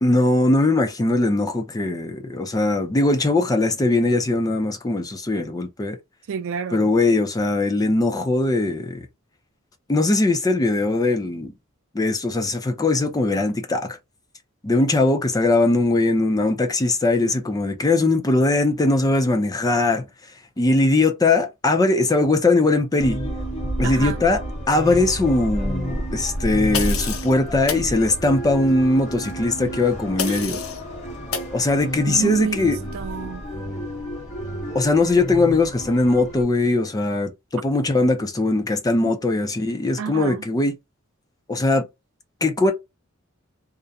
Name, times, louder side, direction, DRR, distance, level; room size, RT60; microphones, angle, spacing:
voice 1, 0.0-6.0 6.7-9.0 9.9-11.5 11.9-14.0 14.6-20.0 20.6-23.2 23.8-30.6 31.5-32.8 34.7-40.7 41.5-41.9 42.4-42.7, left 2 dB, 15° left, 0.4 m, -20 dB
voice 2, 6.3-6.9 23.8-24.2 30.2-30.5 32.1-33.4 39.1-39.2 40.0-40.4, right 6 dB, 65° right, 0.3 m, -29 dB
sound 1, 23.0-36.4, equal, 35° left, 1.1 m, -30 dB
sound 2, 26.7-27.3 27.7-27.9 30.2-30.8 31.3-31.5, left 7 dB, 70° left, 0.6 m, -28 dB
2.4 x 2.1 x 2.6 m
head